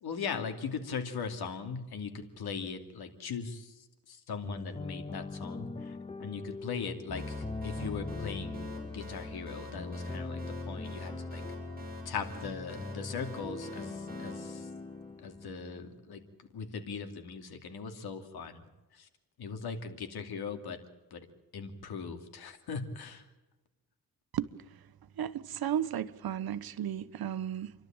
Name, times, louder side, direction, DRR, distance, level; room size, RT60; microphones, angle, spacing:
voice 1, 0.0-11.4 12.0-14.7 15.2-18.6 18.9-19.1 19.4-20.8 21.1-21.3 21.5-23.3, left 5 dB, 85° left, 2.7 m, -40 dB
sound 1, 4.4-16.1, left 3 dB, 15° left, 0.6 m, -41 dB
sound 2, 7.2-15.5, right 1 dB, 25° right, 7.4 m, -49 dB
voice 2, 25.2-27.7, right 10 dB, 70° right, 1.1 m, -34 dB
29.0 x 12.0 x 8.9 m
wide cardioid pair, 120°, 37 cm